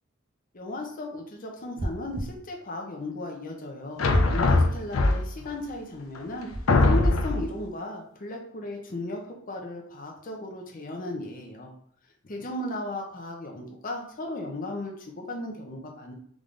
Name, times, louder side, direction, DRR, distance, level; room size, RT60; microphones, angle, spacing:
voice 1, 0.5-4.0 4.3-6.5 6.8-11.7 12.2-16.1, left 1 dB, 40° left, 1 dB, 0.7 m, -36 dB
sound 1, 1.8-2.4 4.1-4.7 6.5-7.0, right 1 dB, 35° right, 0.6 m, -33 dB
sound 2, 4.0-5.5 6.1-6.2 6.7-7.5, left 2 dB, 85° left, 0.5 m, -21 dB
3.7 x 3.4 x 3.8 m, 0.63 s
head